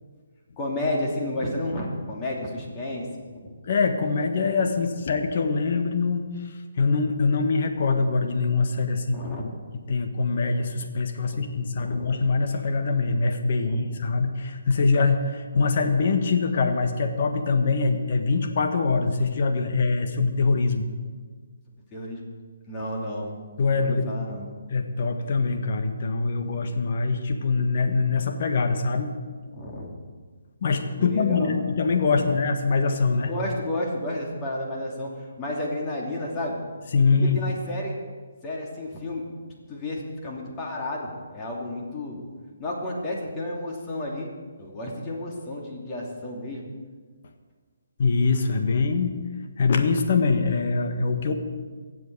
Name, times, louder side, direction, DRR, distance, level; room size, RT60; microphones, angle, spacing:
voice 1, 0.6-3.1 3.3-3.6 9.1-9.4 11.3-12.2 13.6-14.0 21.9-22.2 22.7-23.4 23.8-24.5 29.5-29.9 31.0-31.8 32.2-32.4 33.3-36.6 37.2-37.9 38.4-39.2 39.7-42.2 42.6-44.3 44.6-46.7, left 1 dB, 20° left, -2 dB, 2.9 m, -32 dB
voice 2, 3.6-9.5 9.9-20.9 23.6-24.2 24.7-29.1 30.6-33.3 36.9-37.5 48.0-49.1 49.6-51.3, left 4 dB, 50° left, 5 dB, 1.5 m, -23 dB
23.5 x 8.0 x 4.8 m, 1.5 s
figure-of-eight pair, 140°, 0 cm